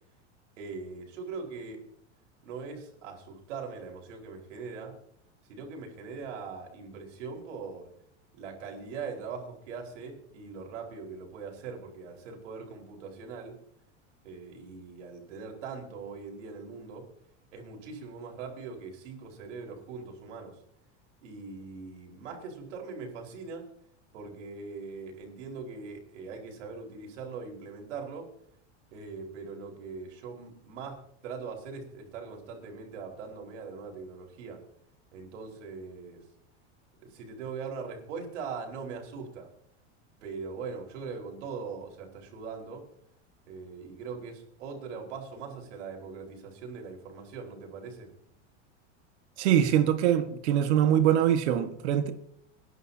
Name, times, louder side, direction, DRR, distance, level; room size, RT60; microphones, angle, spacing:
voice 1, 0.6-1.9 2.4-5.0 5.5-7.9 8.3-13.6 14.2-17.1 17.5-20.6 21.2-23.7 24.1-28.3 28.9-31.0 31.2-34.6 35.1-36.2 37.0-39.5 40.2-42.8 43.5-48.1, right 5 dB, 85° right, 4.8 m, -41 dB
voice 2, 49.4-52.1, right 10 dB, 70° right, 1.7 m, -23 dB
28.5 x 11.0 x 2.9 m
supercardioid pair, 165°, 35 cm